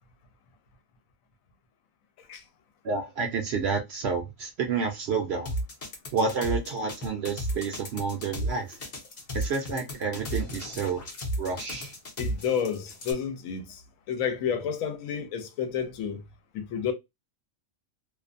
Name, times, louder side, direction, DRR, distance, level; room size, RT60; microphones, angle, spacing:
voice 1, 2.8-5.5 6.1-8.8 9.3-11.1 11.4-11.9, right 5 dB, 65° right, 0.7 m, -29 dB
sound 1, 5.5-13.1, equal, 40° left, 0.6 m, -33 dB
voice 2, 12.2-13.8 14.1-16.2 16.5-16.9, left 7 dB, 85° left, 1.0 m, -30 dB
2.5 x 2.1 x 2.5 m
omnidirectional pair, 1.4 m